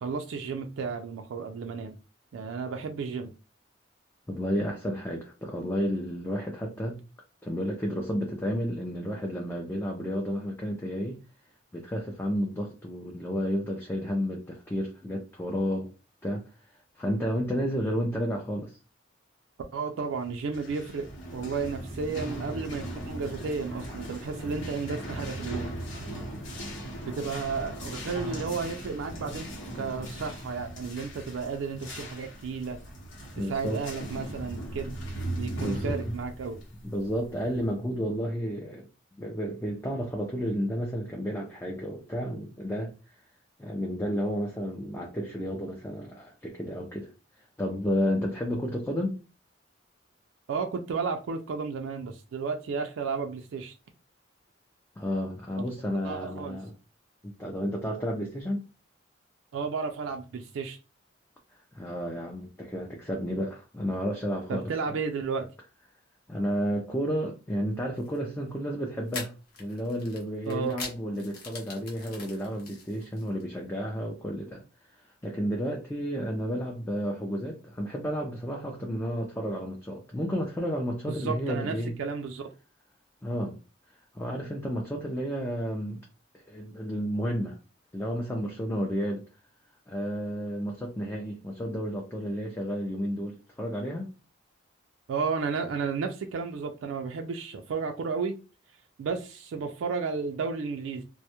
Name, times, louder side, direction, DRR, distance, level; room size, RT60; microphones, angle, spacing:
voice 1, 0.0-2.0 2.3-3.3 19.7-26.2 27.1-29.5 29.7-32.8 33.4-34.9 35.4-36.6 50.5-53.7 56.0-56.6 59.5-60.8 64.5-65.5 70.5-70.8 81.1-82.5 95.1-98.4 99.0-101.0, right 5 dB, 85° right, 0.3 m, -33 dB
voice 2, 4.3-7.0 7.4-11.2 11.7-15.9 16.2-16.4 17.0-18.8 33.4-33.8 35.6-36.1 36.8-38.8 39.2-42.9 43.6-47.1 47.6-49.2 55.0-56.7 57.2-58.7 61.7-65.0 66.3-69.3 69.6-74.6 75.0-82.0 83.2-83.6 84.1-86.0 86.5-87.6 87.9-89.2 89.9-94.1, equal, 10° left, 0.3 m, -31 dB
sound 1, 20.3-37.8, right 1 dB, 85° left, 0.9 m, -38 dB
sound 2, 68.0-68.2 69.1-73.4, left 4 dB, 50° left, 0.7 m, -42 dB
2.2 x 2.0 x 2.8 m
head